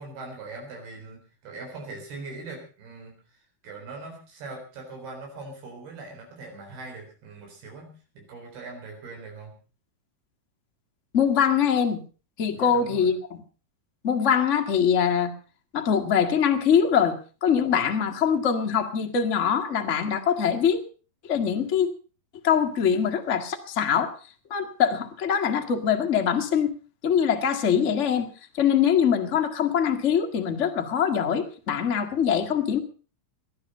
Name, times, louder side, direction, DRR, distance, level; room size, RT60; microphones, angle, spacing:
voice 1, 0.0-9.5 12.5-13.1, right 3 dB, 85° right, 1 dB, 6.1 m, -41 dB
voice 2, 11.1-12.0 12.4-13.4 14.0-15.3 15.7-20.8 21.2-21.9 22.4-24.1 24.5-26.7 27.0-28.3 28.6-32.8, left 7 dB, 85° left, 4 dB, 0.6 m, -23 dB
19.5 x 11.5 x 5.4 m, 0.37 s
omnidirectional pair, 4.4 m